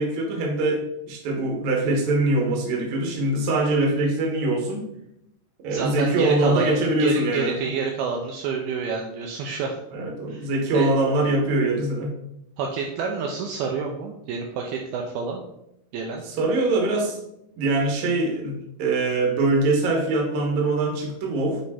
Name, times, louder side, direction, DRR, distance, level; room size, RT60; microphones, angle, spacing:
voice 1, 0.0-4.8 5.6-7.6 9.9-12.1 16.2-17.2 17.6-21.6, right 2 dB, 65° right, 0 dB, 2.0 m, -23 dB
voice 2, 5.7-9.8 10.3-10.5 10.7-10.9 12.6-15.4 15.9-16.2, right 5 dB, 85° right, 1 dB, 2.3 m, -28 dB
7.1 x 3.3 x 4.1 m, 0.82 s
omnidirectional pair, 4.7 m